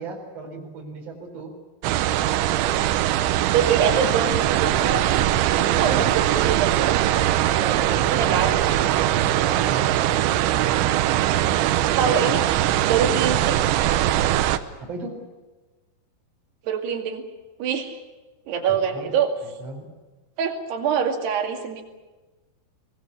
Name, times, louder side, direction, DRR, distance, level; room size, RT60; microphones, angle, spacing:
voice 1, 0.0-1.5 5.8-6.2 7.5-10.5 14.8-15.2 18.7-19.2 19.6-19.9, right 3 dB, 35° right, 1 dB, 5.0 m, -36 dB
sound 1, 1.8-14.6, right 13 dB, 85° right, 3.2 m, -21 dB
voice 2, 3.5-5.1 5.5-7.0 8.2-8.6 11.9-12.5 12.9-13.6 16.6-17.2 17.6-18.0 18.5-19.3 20.4-21.8, right 7 dB, 70° right, 3 dB, 4.3 m, -24 dB
24.5 x 20.0 x 8.4 m, 1.2 s
omnidirectional pair, 5.1 m